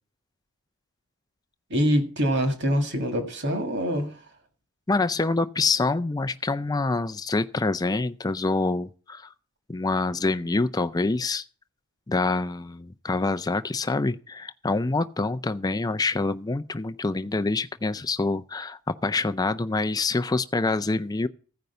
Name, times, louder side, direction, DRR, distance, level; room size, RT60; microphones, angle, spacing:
voice 1, 1.7-4.1, equal, 55° right, 1.9 m, -24 dB
voice 2, 4.9-9.3 9.7-11.4 12.1-21.3, left 3 dB, 15° left, 0.4 m, -26 dB
15.0 x 5.2 x 6.8 m
head